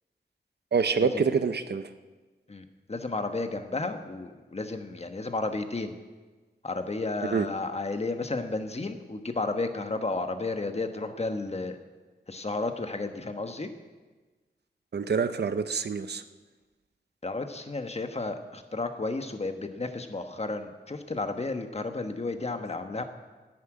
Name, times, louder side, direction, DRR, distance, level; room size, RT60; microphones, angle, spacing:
voice 1, 0.7-1.9 7.3-7.5 14.9-16.2, right 5 dB, 75° right, 11 dB, 0.8 m, -26 dB
voice 2, 2.5-6.0 6.6-11.8 12.3-13.7 17.2-23.0, left 3 dB, 35° left, 7 dB, 1.3 m, -32 dB
11.0 x 10.0 x 8.8 m, 1.3 s
wide cardioid pair, 85°, 17 cm